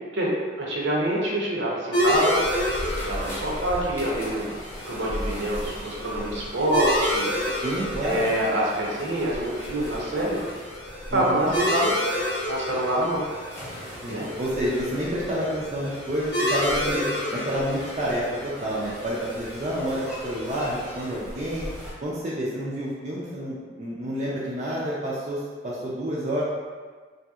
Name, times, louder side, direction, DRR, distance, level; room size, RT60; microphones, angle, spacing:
voice 1, 0.6-2.4 2.9-4.6 4.8-7.3 8.0-10.4 11.1-11.9 12.5-13.2 14.1-14.3, right 1 dB, 70° right, -4 dB, 0.7 m, -26 dB
sound 1, 1.9-21.1, left 1 dB, 60° left, 0.6 m, -30 dB
sound 2, 2.0-21.9, equal, 15° left, 0.8 m, -39 dB
voice 2, 7.6-8.3 11.1-11.5 14.0-21.7 22.0-26.4, equal, 35° right, -7 dB, 0.4 m, -29 dB
3.1 x 2.7 x 2.3 m, 1.5 s
head